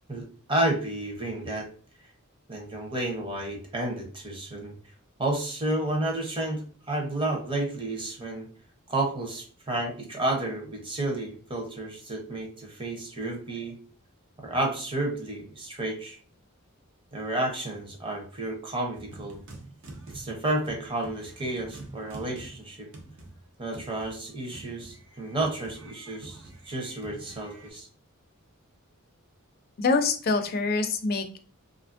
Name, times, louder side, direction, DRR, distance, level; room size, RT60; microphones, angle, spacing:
voice 1, 0.1-1.7 2.5-4.7 5.2-8.5 8.9-13.8 14.4-16.2 17.1-19.4 20.1-22.9 23.6-27.9, right 1 dB, 25° right, 1 dB, 0.7 m, -31 dB
sound 1, 18.9-27.7, right 2 dB, 65° right, 0.7 m, -47 dB
voice 2, 29.8-31.5, left 3 dB, 45° left, 6 dB, 0.4 m, -25 dB
2.8 x 2.5 x 2.5 m, 0.41 s
head